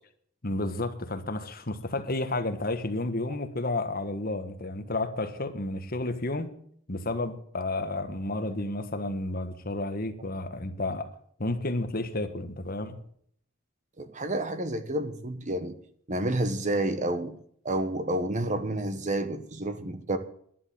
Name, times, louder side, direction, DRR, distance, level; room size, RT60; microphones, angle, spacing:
voice 1, 0.4-6.5 6.9-11.1 11.4-13.0, left 2 dB, 45° left, 1.5 m, -31 dB
voice 2, 14.0-15.7 16.1-17.3 17.6-20.2, right 1 dB, 35° right, 1.1 m, -29 dB
11.0 x 11.0 x 7.6 m
head